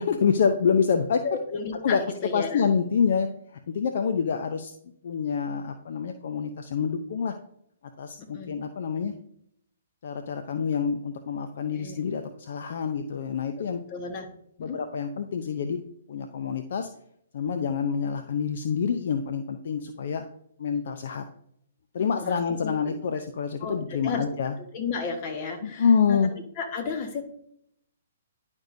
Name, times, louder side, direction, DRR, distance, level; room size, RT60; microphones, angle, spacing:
voice 1, 0.0-1.4 1.8-2.0 2.3-4.7 5.0-7.3 8.0-9.1 10.0-13.8 14.6-15.8 16.1-16.9 17.3-20.2 20.6-21.2 21.9-24.5 25.6-26.3, left 6 dB, 60° left, 7 dB, 0.6 m, -27 dB
voice 2, 1.2-2.6 8.3-8.5 11.7-11.9 13.9-14.3 14.6-14.8 22.0-22.7 23.6-24.2 24.7-26.2 26.6-27.3, left 5 dB, 35° left, 4 dB, 1.6 m, -33 dB
10.5 x 5.3 x 2.7 m, 0.72 s
hypercardioid pair, 130°, 0 cm